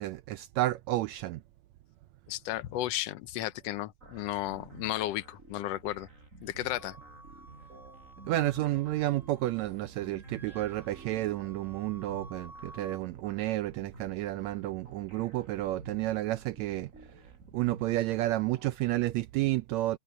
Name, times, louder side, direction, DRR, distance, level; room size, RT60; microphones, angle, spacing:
voice 1, 0.0-1.4 8.3-16.9 17.5-20.0, right 16 dB, 80° right, 1.8 m, -31 dB
voice 2, 2.3-6.1 6.4-7.0, left 14 dB, 70° left, 1.7 m, -34 dB
sound 1, 4.0-18.8, right 2 dB, 25° right, 6.6 m, -52 dB
Wind instrument woodwind instrument, 6.8-9.7 9.9-13.0, right 1 dB, ahead, 2.7 m, -54 dB
omnidirectional pair, 3.4 m